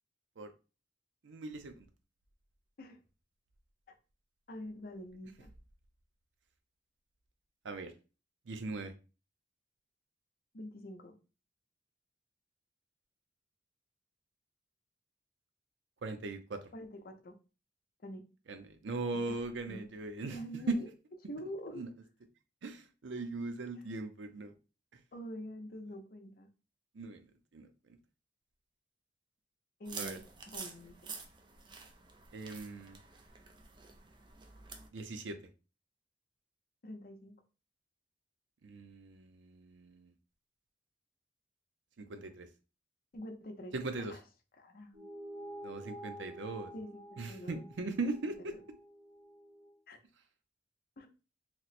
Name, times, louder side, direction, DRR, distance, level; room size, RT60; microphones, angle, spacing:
voice 1, 1.2-1.9 7.6-7.9 8.5-8.9 16.0-16.7 18.5-20.4 20.7-20.8 21.7-21.9 22.6-24.5 24.9-25.0 26.9-27.3 27.5-28.0 29.9-30.2 32.3-33.0 34.9-35.4 38.6-40.1 42.0-42.5 43.7-44.1 45.6-46.7 47.2-48.5, right 3 dB, 90° right, 8 dB, 0.5 m, -39 dB
voice 2, 4.5-5.5 10.5-11.2 16.7-17.4 18.0-18.3 19.3-19.4 19.7-19.9 20.2-20.9 21.3-21.8 25.1-26.5 29.8-31.1 36.8-37.4 43.1-44.2 44.6-45.0 46.7-47.9 49.9-50.0 51.0-51.1, equal, 55° left, 5 dB, 0.6 m, -46 dB
sound 1, 29.8-34.9, right 5 dB, 25° right, 0.4 m, -48 dB
sound 2, 44.9-49.7, right 1 dB, 65° right, 1.1 m, -49 dB
2.9 x 2.0 x 4.1 m, 0.33 s
head